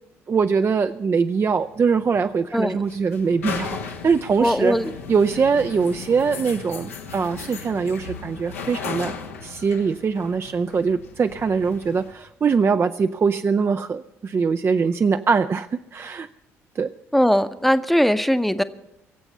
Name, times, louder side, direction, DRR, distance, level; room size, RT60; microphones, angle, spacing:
voice 1, 0.3-4.8 5.1-9.1 9.4-16.3 16.8-16.9, right 5 dB, 35° right, 10 dB, 0.4 m, -22 dB
sound 1, 1.5-12.1, left 5 dB, 85° left, 1.0 m, -36 dB
voice 2, 4.4-4.9 17.1-18.6, equal, ahead, 12 dB, 0.7 m, -20 dB
23.0 x 8.0 x 5.5 m, 0.89 s
hypercardioid pair, 50°, 8 cm